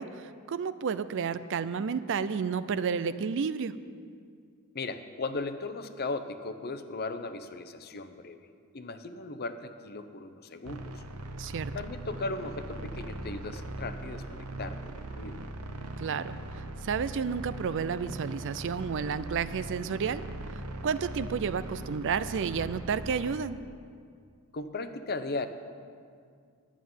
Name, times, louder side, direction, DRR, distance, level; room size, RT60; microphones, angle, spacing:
voice 1, 0.0-3.7 11.4-11.7 16.0-16.3 16.8-20.2 20.8-23.6, right 6 dB, 60° right, 14 dB, 0.4 m, -31 dB
voice 2, 4.7-8.4 8.7-11.0 11.7-15.4 24.5-25.5, left 3 dB, 45° left, 9 dB, 0.7 m, -37 dB
sound 1, 10.6-23.4, right 1 dB, 90° right, 0.9 m, -40 dB
11.0 x 7.3 x 9.5 m, 2.2 s
head